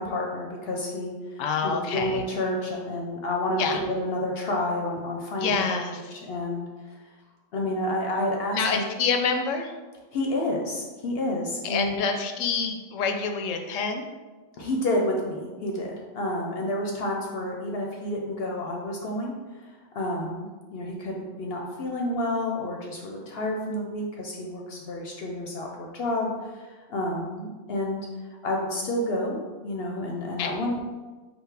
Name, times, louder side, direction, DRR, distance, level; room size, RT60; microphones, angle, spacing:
voice 1, 0.0-6.7 7.5-8.8 10.1-12.0 14.6-28.1 28.4-30.8, left 1 dB, 60° left, 0 dB, 0.7 m, -30 dB
voice 2, 1.4-2.2 3.6-3.8 5.4-6.0 8.5-9.7 11.6-14.1 30.4-30.5, left 5 dB, 85° left, 5 dB, 1.0 m, -27 dB
5.2 x 2.1 x 4.6 m, 1.3 s
omnidirectional pair, 1.3 m